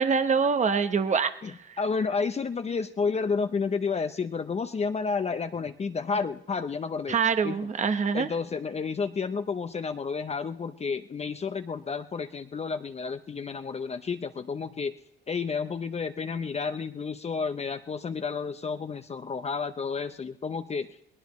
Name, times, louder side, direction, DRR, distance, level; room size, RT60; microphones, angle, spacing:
voice 1, 0.0-1.8 7.1-8.3, right 5 dB, 35° right, 10 dB, 1.0 m, -25 dB
voice 2, 1.4-7.2 7.4-7.6 8.1-14.9 15.3-20.9, left 5 dB, 30° left, 8 dB, 0.7 m, -31 dB
22.0 x 18.0 x 3.1 m, 0.78 s
cardioid pair, 90°, 20 cm